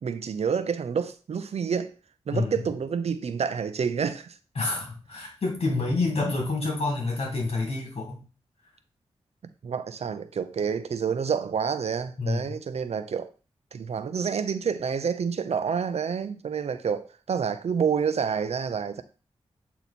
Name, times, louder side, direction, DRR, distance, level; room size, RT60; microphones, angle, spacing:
voice 1, 0.0-1.9 2.3-4.4 9.6-13.3 13.7-19.0, right 6 dB, 70° right, 0.6 m, -28 dB
voice 2, 4.6-8.2 12.2-12.5, left 3 dB, 60° left, 2.3 m, -28 dB
8.2 x 3.0 x 4.2 m
cardioid pair, 65°, 11 cm